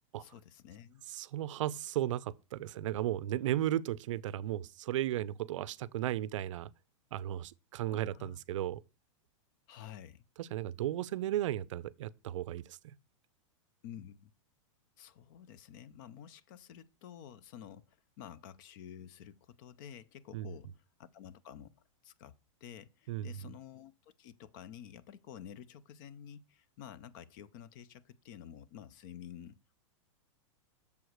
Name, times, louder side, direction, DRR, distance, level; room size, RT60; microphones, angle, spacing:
voice 1, 0.2-1.0 7.9-8.4 9.7-10.2 13.8-14.3 15.0-21.7 22.0-29.7, left 9 dB, 40° left, 0.5 m, -51 dB
voice 2, 1.1-6.7 7.1-8.8 10.4-12.9 20.3-20.5 23.1-23.3, right 13 dB, 70° right, 0.5 m, -35 dB
6.9 x 4.7 x 6.4 m
supercardioid pair, 165°, 17 cm